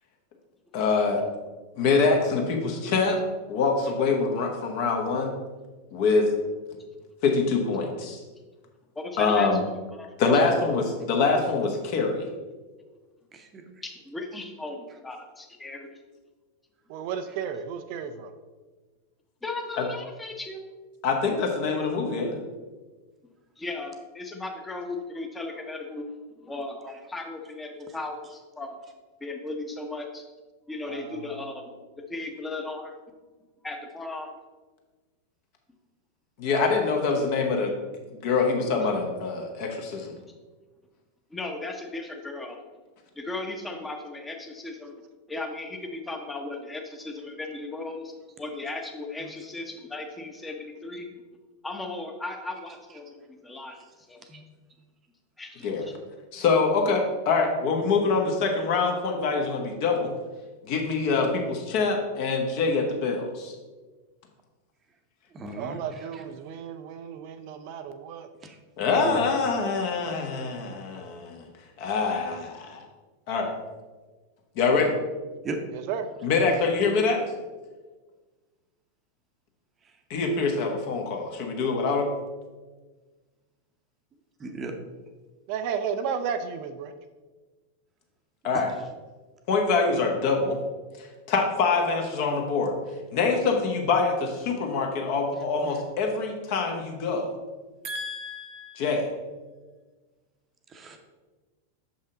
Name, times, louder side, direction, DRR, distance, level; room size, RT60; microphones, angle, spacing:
voice 1, 0.7-1.2 1.8-3.2 3.5-5.3 5.9-6.3 7.2-8.2 9.2-9.6 10.2-12.3 19.8-19.9 21.0-22.4 36.4-37.7 38.2-40.1 55.6-55.9 56.3-60.1 60.6-63.5 68.8-71.5 71.8-72.8 73.3-73.5 74.6-75.0 76.2-77.2 80.1-82.1 88.4-88.7 89.5-90.6 91.0-92.7 93.1-97.3 98.8-99.1, left 4 dB, 45° left, 2 dB, 1.1 m, -25 dB
voice 2, 8.9-9.5 10.0-10.5 13.8-16.0 19.4-20.6 23.6-26.1 26.4-28.8 29.2-30.2 30.7-31.8 32.1-32.9 33.6-34.3 40.2-40.3 41.3-42.6 43.2-45.0 45.3-48.1 48.4-51.1 51.6-53.8 54.1-54.2 55.4-55.9, left 2 dB, 10° left, 4 dB, 0.9 m, -36 dB
voice 3, 13.3-13.6 54.3-54.4 65.3-65.8 66.1-66.2 68.4-68.6 69.0-69.3 75.4-75.6 84.4-84.7 97.8-99.0 100.7-101.0, right 3 dB, 25° right, 5 dB, 0.8 m, -36 dB
voice 4, 16.9-18.3 30.9-31.5 65.6-68.3 75.7-76.1 85.5-86.9 97.8-98.8, right 7 dB, 45° right, 8 dB, 0.4 m, -33 dB
6.4 x 5.6 x 3.9 m, 1.3 s
figure-of-eight pair, 90°, 0 cm